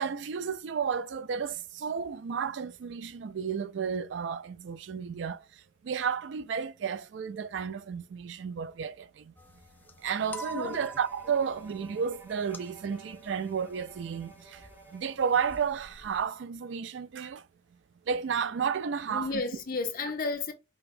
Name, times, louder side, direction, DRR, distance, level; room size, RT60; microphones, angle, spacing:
voice 1, 0.0-5.4 5.8-9.3 10.0-14.6 14.9-17.4 18.1-19.4, right 6 dB, 70° right, 0.4 m, -32 dB
sound 1, 9.4-16.3, right 1 dB, 10° left, 0.3 m, -48 dB
voice 2, 10.5-10.9 19.1-20.5, left 3 dB, 45° left, 0.7 m, -32 dB
Bowed string instrument, 10.7-16.0, right 3 dB, 10° right, 0.8 m, -53 dB
5.0 x 2.3 x 2.5 m
head